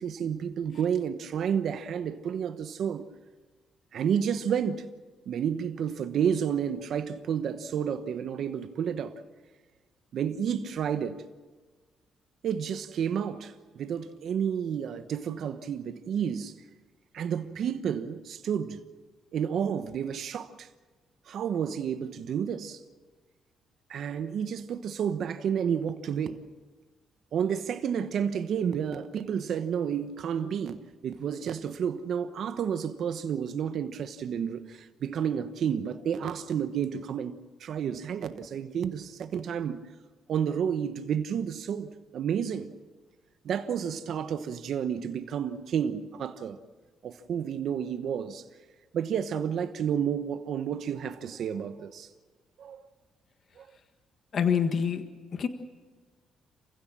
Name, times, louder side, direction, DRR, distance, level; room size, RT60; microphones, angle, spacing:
voice 1, 0.0-3.0 3.9-4.9 5.3-9.1 10.1-11.2 12.4-16.5 17.1-18.8 19.3-20.7 21.3-22.8 23.9-26.4 27.3-37.3 37.6-39.8 40.3-42.7 43.4-46.6 47.0-48.4 48.9-52.1 52.6-52.8 53.6-53.7, right 8 dB, 65° right, 1.1 m, -30 dB
voice 2, 54.3-55.1 55.3-55.5, left 7 dB, 55° left, 1.6 m, -26 dB
28.5 x 16.0 x 7.5 m
cardioid pair, 90°, 0 cm